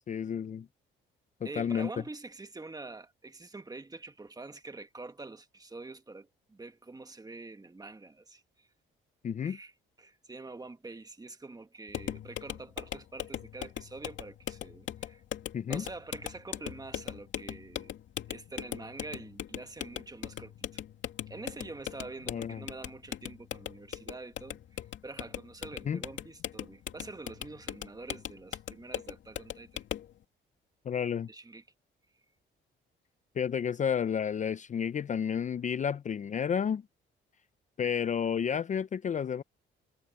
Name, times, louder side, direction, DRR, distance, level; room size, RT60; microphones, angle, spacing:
voice 1, 0.1-0.7 1.6-1.9 9.2-9.6 15.5-15.8 22.3-22.6 25.8-26.0 30.9-31.3 33.4-36.8 37.8-39.4, left 7 dB, 40° left, 0.5 m, -31 dB
voice 2, 1.4-8.7 9.4-9.7 10.0-15.2 15.7-17.9 18.3-20.8 21.3-29.8 31.3-31.6, right 3 dB, 20° right, 1.7 m, -46 dB
sound 1, 11.9-30.1, left 10 dB, 70° left, 2.6 m, -40 dB
cardioid pair, 90°, 20 cm